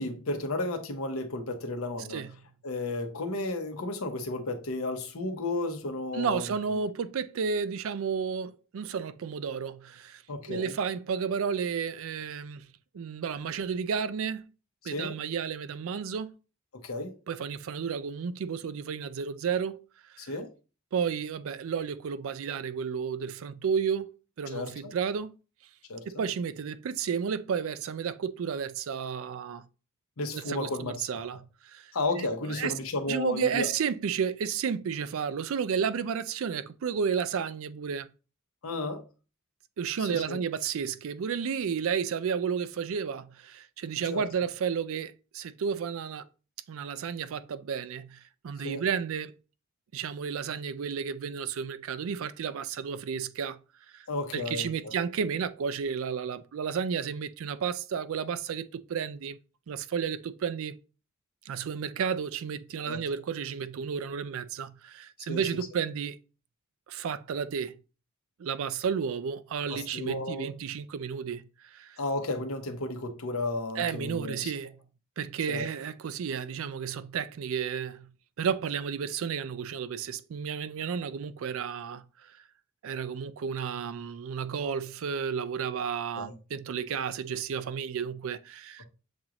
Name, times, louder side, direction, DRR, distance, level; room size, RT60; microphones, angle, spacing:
voice 1, 0.0-2.2 2.6-6.4 10.3-10.7 14.8-15.1 16.8-17.1 20.2-20.5 24.5-24.7 25.9-26.2 30.2-31.3 31.9-33.7 38.6-39.0 40.0-40.4 44.1-44.2 48.6-48.8 54.1-54.9 62.8-63.0 65.3-65.4 69.7-70.5 72.0-74.5 75.5-75.6 86.2-86.3, left 2 dB, 75° left, 0.9 m, -33 dB
voice 2, 6.1-10.2 10.5-12.7 12.9-14.5 14.8-16.3 17.3-19.8 20.1-20.3 20.9-25.3 26.1-29.7 30.3-32.7 33.1-38.1 39.8-46.3 46.7-49.3 49.9-53.6 53.9-54.1 54.3-59.4 59.7-60.8 61.5-66.2 66.9-67.8 68.4-72.0 73.8-74.7 75.2-78.1 78.4-82.4 82.8-88.9, right 6 dB, 70° right, 0.4 m, -32 dB
7.2 x 2.5 x 2.9 m
head